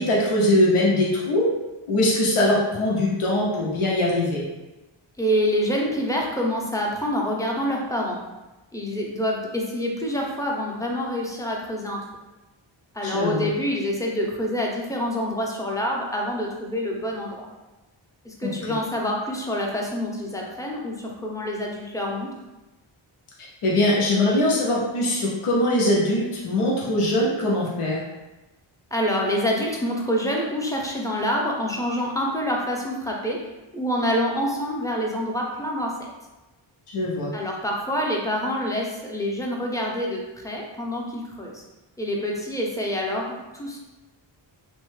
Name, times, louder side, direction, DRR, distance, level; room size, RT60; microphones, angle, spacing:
voice 1, 0.0-1.5 1.9-4.4 13.0-13.5 18.4-18.5 23.6-28.0 36.9-37.3, left 1 dB, 90° left, -4 dB, 0.7 m, -22 dB
voice 2, 5.2-8.2 8.7-12.1 12.9-17.5 18.2-22.3 28.9-33.4 33.7-36.0 37.3-41.6 42.0-43.8, equal, 5° left, -2 dB, 0.6 m, -26 dB
3.0 x 2.1 x 3.1 m, 1.1 s
wide cardioid pair, 45°, 49 cm